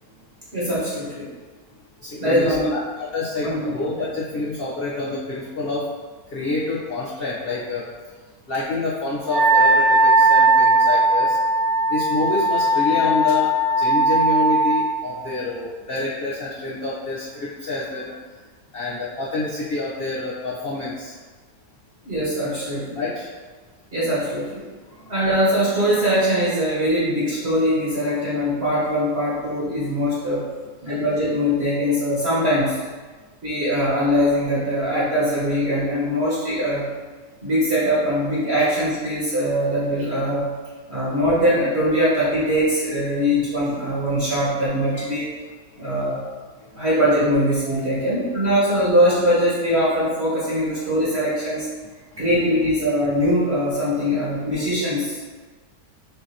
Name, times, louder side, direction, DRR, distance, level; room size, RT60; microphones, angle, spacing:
voice 1, 0.5-1.3 2.2-2.7 3.4-4.1 22.0-23.0 23.9-24.7 25.1-30.4 30.8-32.8 33.4-36.9 37.4-40.5 40.9-45.3 45.8-46.2 46.7-51.7 52.2-55.2, equal, 40° right, -10 dB, 1.4 m, -21 dB
voice 2, 2.1-5.8 6.3-7.8 8.5-11.4 11.9-13.5 13.8-18.1 18.7-21.1 23.0-23.3 25.0-25.2 44.6-44.7 44.9-45.0 47.6-48.0 52.1-52.2, left 3 dB, 65° left, -7 dB, 0.6 m, -27 dB
Wind instrument woodwind instrument, 9.3-14.8, right 2 dB, 65° right, 1.1 m, -18 dB
6.6 x 2.6 x 2.7 m, 1.4 s
omnidirectional pair, 1.9 m